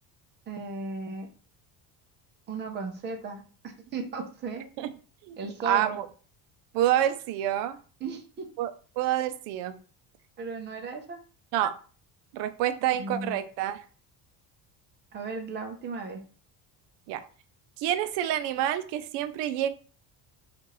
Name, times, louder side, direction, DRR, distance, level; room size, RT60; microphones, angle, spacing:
voice 1, 0.5-1.3 2.5-4.7 5.4-6.0 8.0-8.5 10.4-11.2 12.9-13.4 15.1-16.2, right 4 dB, 25° right, 4 dB, 0.5 m, -36 dB
voice 2, 5.6-6.1 6.7-7.8 8.6-9.7 11.5-11.7 12.3-13.8 17.1-17.2 17.8-19.7, right 12 dB, 75° right, 11 dB, 0.5 m, -27 dB
4.5 x 2.5 x 2.9 m, 0.39 s
cardioid pair, 175°, 42 cm